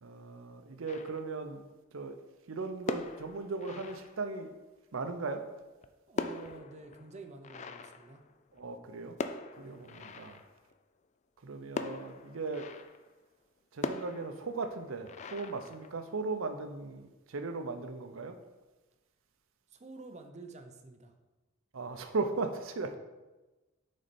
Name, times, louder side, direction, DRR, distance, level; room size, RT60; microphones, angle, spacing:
voice 1, 0.0-1.6 1.9-2.2 2.5-4.5 4.9-5.4 8.6-9.2 9.6-10.4 11.4-12.7 13.7-18.4 21.7-23.0, right 3 dB, 75° right, 7 dB, 0.6 m, -37 dB
sound 1, 0.9-1.6 2.7-4.6 5.6-8.8 9.2-10.8 11.8-13.2 13.8-16.3, left 4 dB, 35° left, 0.3 m, -42 dB
voice 2, 6.1-8.2 9.6-9.8 19.7-21.1, right 3 dB, 35° right, 6 dB, 0.6 m, -49 dB
6.3 x 4.2 x 4.2 m, 1.1 s
head